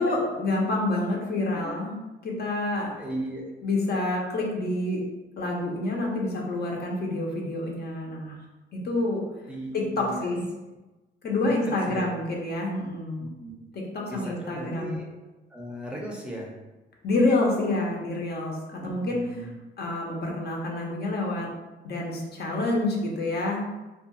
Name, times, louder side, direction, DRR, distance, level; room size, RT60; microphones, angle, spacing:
voice 1, 0.0-2.0 2.2-2.9 3.6-5.0 5.4-8.4 8.7-9.2 9.7-10.5 11.2-13.2 13.7-14.9 17.0-19.2 19.8-21.5 21.8-23.6, left 2 dB, 55° left, -1 dB, 0.6 m, -27 dB
voice 2, 3.0-3.5 9.5-10.3 11.4-11.5 11.9-12.1 13.2-13.6 14.1-15.1 15.5-16.6 18.8-19.5, right 1 dB, 5° right, -3 dB, 0.5 m, -37 dB
2.4 x 2.3 x 2.9 m, 1.1 s
cardioid pair, 90°, 20 cm